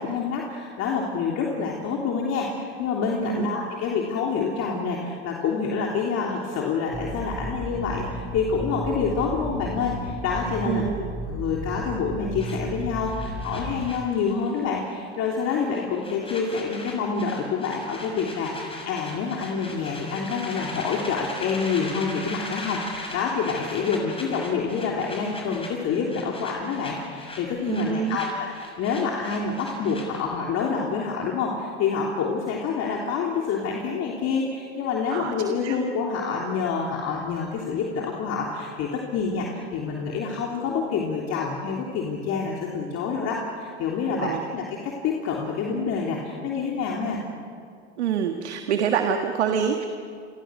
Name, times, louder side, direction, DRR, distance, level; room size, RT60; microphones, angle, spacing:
voice 1, 0.0-10.9 11.2-47.2, left 5 dB, 50° left, -1 dB, 3.4 m, -27 dB
sound 1, 6.9-13.9, right 1 dB, 25° right, 6.1 m, -34 dB
voice 2, 10.7-11.1 27.7-28.2 35.1-35.3 35.6-35.8 44.2-44.4 48.0-49.8, right 8 dB, 85° right, 5 dB, 1.7 m, -26 dB
sound 2, 12.4-14.6 14.9-15.2 15.5-30.4, left 2 dB, 15° left, 6.4 m, -39 dB
29.5 x 23.0 x 6.4 m, 2.3 s
hypercardioid pair, 95°, 33 cm